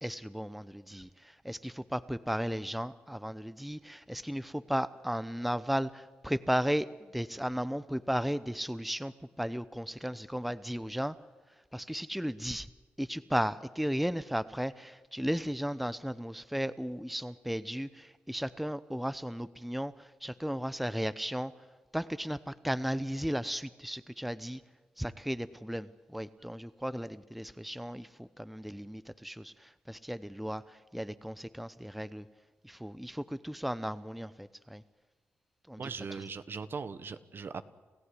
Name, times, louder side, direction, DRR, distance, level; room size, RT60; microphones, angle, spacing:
voice 1, 0.0-6.9 7.1-11.2 11.7-12.7 13.0-21.5 21.9-24.6 25.0-32.3 32.6-34.8 35.7-35.8, equal, ahead, 15 dB, 0.8 m, -35 dB
voice 2, 35.8-37.6, right 5 dB, 50° right, 13 dB, 1.2 m, -39 dB
28.5 x 15.0 x 9.8 m, 1.4 s
cardioid pair, 60°, 5 cm